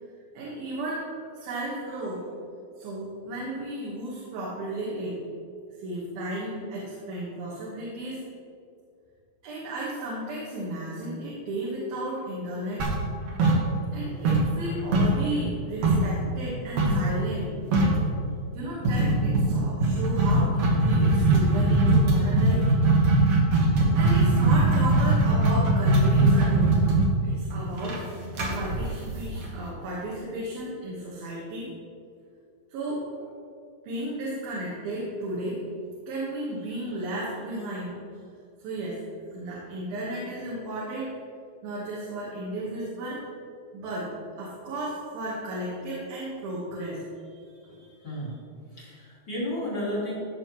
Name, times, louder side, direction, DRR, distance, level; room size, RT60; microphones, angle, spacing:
voice 1, 0.3-2.2 2.8-5.2 5.8-8.2 9.4-12.9 13.9-17.5 18.5-22.7 24.0-26.8 27.2-28.2 28.5-31.7 32.7-33.3 33.8-35.6 36.1-37.9 38.6-39.0 39.3-41.1 41.6-43.2 43.7-48.1, right 1 dB, 75° right, -6 dB, 3.3 m, -34 dB
sound 1, 12.8-14.0 14.2-16.1 16.8-17.1 17.4-17.5 17.7-18.1 18.8-29.6, right 2 dB, 60° right, 2.4 m, -21 dB
voice 2, 48.0-48.4 48.7-50.2, left 1 dB, 30° left, -7 dB, 2.3 m, -32 dB
14.5 x 6.4 x 3.1 m, 2.4 s
omnidirectional pair, 4.4 m